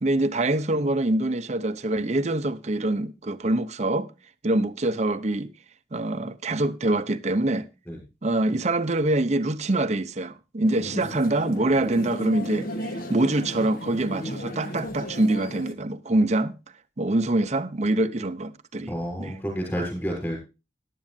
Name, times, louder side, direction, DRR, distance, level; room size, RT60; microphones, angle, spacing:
voice 1, 0.0-4.1 4.4-5.5 5.9-7.7 8.2-16.6 17.0-18.9 19.2-19.4, right 2 dB, 40° right, 0.7 m, -25 dB
sound 1, 10.6-15.7, equal, 55° left, 1.3 m, -35 dB
voice 2, 18.9-20.4, equal, 15° left, 6.2 m, -30 dB
14.5 x 11.0 x 2.6 m
head